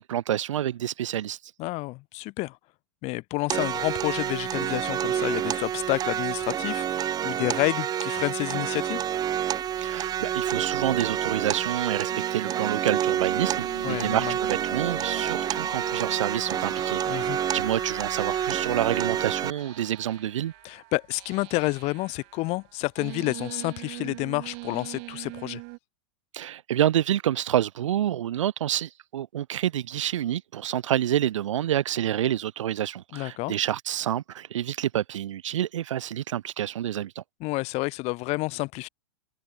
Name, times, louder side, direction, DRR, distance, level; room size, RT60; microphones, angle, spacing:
voice 1, 0.0-1.4 9.8-20.5 26.3-37.2, right 11 dB, 75° right, 2.3 m, -28 dB
voice 2, 1.6-2.6 3.0-9.0 13.8-14.3 17.1-17.4 20.6-25.6 33.1-33.5 37.4-38.9, left 23 dB, 40° left, 1.0 m, -29 dB
sound 1, 3.5-19.5, right 10 dB, 25° right, 0.8 m, -28 dB
sound 2, 12.1-25.8, right 40 dB or more, 50° right, 1.5 m, -43 dB
sound 3, 13.0-20.8, left 7 dB, 90° left, 2.0 m, -45 dB
hypercardioid pair, 110°, 16 cm